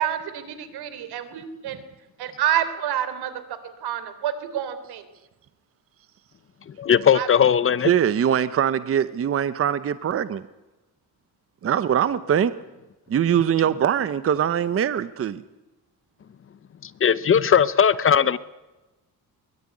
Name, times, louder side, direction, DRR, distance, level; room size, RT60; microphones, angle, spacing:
voice 1, 0.0-1.8 2.2-3.3 3.6-5.1 7.1-7.3, right 10 dB, 85° right, 11 dB, 3.7 m, -28 dB
voice 2, 6.8-7.9 17.0-18.4, left 8 dB, 35° left, 16 dB, 0.8 m, -18 dB
voice 3, 7.8-10.5 11.6-12.5 13.1-15.4, right 9 dB, 35° right, 13 dB, 0.9 m, -22 dB
23.0 x 22.0 x 9.8 m, 1.1 s
cardioid pair, 160°, 38 cm